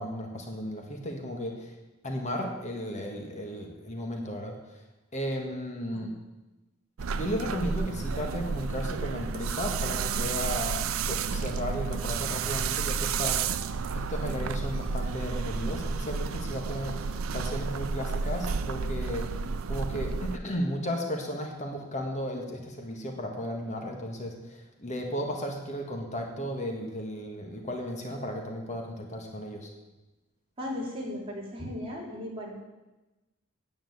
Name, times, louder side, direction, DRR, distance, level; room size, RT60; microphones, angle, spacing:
voice 1, 0.0-1.7 2.0-4.6 5.1-6.1 7.1-13.4 13.9-19.3 19.7-29.7, equal, 35° left, 2 dB, 1.6 m, -34 dB
sound 1, 7.0-20.4, right 5 dB, 90° right, 0.5 m, -31 dB
voice 2, 30.6-32.5, left 1 dB, 30° right, -4 dB, 3.2 m, -36 dB
9.6 x 7.8 x 7.9 m, 1.1 s
head